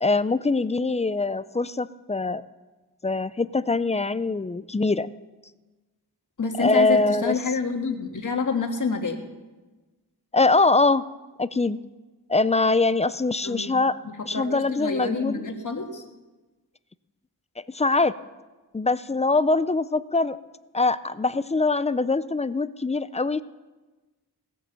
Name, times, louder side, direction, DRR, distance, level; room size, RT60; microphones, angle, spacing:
voice 1, 0.0-2.4 3.0-5.1 6.6-7.3 10.3-11.0 11.4-11.8 12.3-14.0 14.3-15.4 17.7-18.1 18.7-20.4 20.7-23.4, left 3 dB, 20° left, 15 dB, 0.4 m, -23 dB
voice 2, 6.4-9.2 13.4-13.8 14.1-16.0, left 4 dB, 50° left, 4 dB, 1.7 m, -28 dB
18.0 x 8.5 x 6.8 m, 1.2 s
wide cardioid pair, 110°, 38 cm